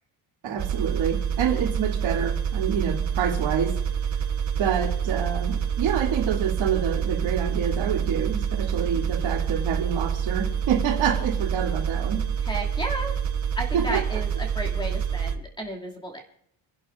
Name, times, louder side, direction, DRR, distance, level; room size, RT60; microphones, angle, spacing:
voice 1, 0.4-3.8 4.6-12.2 13.7-14.0, right 8 dB, 80° right, 2.5 m, -27 dB
sound 1, 0.6-15.4, right 8 dB, 40° right, 1.0 m, -27 dB
voice 2, 12.4-13.2 13.6-16.2, right 1 dB, 10° left, 2.4 m, -33 dB
28.0 x 11.0 x 2.5 m
cardioid pair, 180°, 45 cm